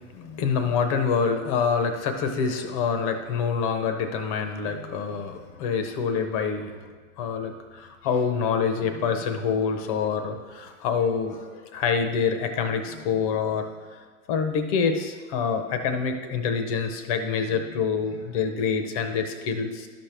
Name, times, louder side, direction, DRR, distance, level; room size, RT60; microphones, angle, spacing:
voice 1, 0.1-6.7 7.2-13.6 14.3-19.9, left 6 dB, 25° left, 6 dB, 0.6 m, -26 dB
12.0 x 5.9 x 3.4 m, 1.5 s
hypercardioid pair, 145°, 43 cm